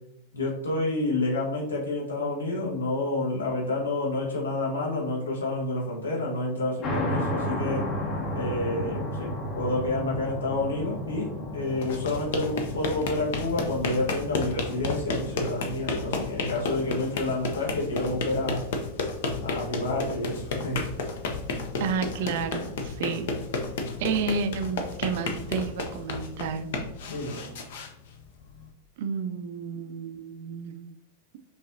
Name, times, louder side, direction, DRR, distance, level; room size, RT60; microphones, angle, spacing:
voice 1, 0.3-7.9 8.3-18.6 19.4-20.8 27.1-27.4, left 2 dB, 70° left, -3 dB, 1.3 m, -29 dB
sound 1, 6.8-26.6, left 1 dB, 30° left, 0.8 m, -36 dB
sound 2, 11.7-28.7, left 3 dB, 55° left, 0.5 m, -32 dB
voice 2, 21.8-23.3 24.0-26.7 29.0-30.8, right 5 dB, 50° right, 8 dB, 0.4 m, -31 dB
5.5 x 2.7 x 2.5 m, 0.77 s
figure-of-eight pair, 90°, 0 cm